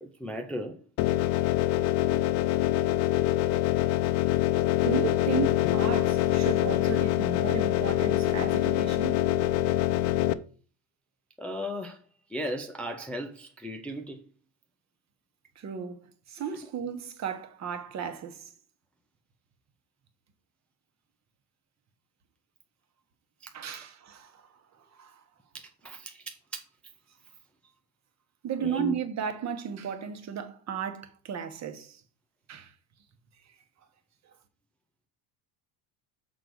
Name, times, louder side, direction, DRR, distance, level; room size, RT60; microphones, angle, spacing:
voice 1, 0.0-0.8 11.4-12.0 12.3-14.2 23.4-23.5 25.8-26.6 28.6-28.9, equal, 5° left, 0.5 m, -36 dB
sound 1, 1.0-10.3, left 14 dB, 80° left, 0.7 m, -25 dB
voice 2, 4.7-9.2 15.6-18.5 23.5-24.5 24.9-25.2 28.4-32.0 32.5-32.7, right 7 dB, 35° right, 1.1 m, -35 dB
6.3 x 4.0 x 6.2 m
cardioid pair, 145°, 45 cm